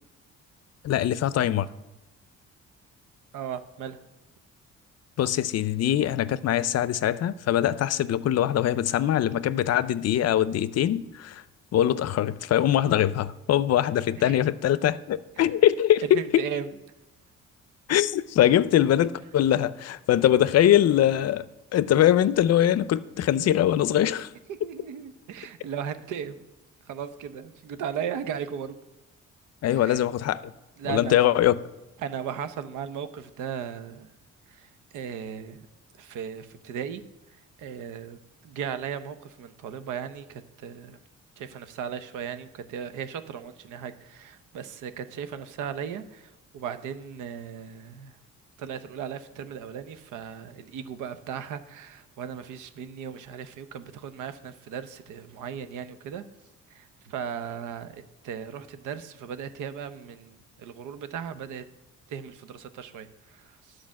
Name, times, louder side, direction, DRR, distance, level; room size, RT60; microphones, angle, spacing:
voice 1, 0.8-1.7 5.2-11.4 11.7-16.5 17.9-21.5 21.7-24.3 29.6-30.5 30.9-31.6, left 11 dB, 60° left, 0.5 m, -22 dB
voice 2, 3.3-4.0 14.2-14.4 15.4-15.7 16.0-16.7 24.6-26.5 26.9-28.8 29.7-30.0 30.8-31.2 32.0-34.1 34.5-35.7 36.0-37.0 37.6-41.0 41.4-48.1 48.6-56.2 56.7-61.6 62.1-63.8, right 8 dB, 85° right, 0.8 m, -37 dB
10.5 x 5.0 x 7.4 m
cardioid pair, 90°, 30 cm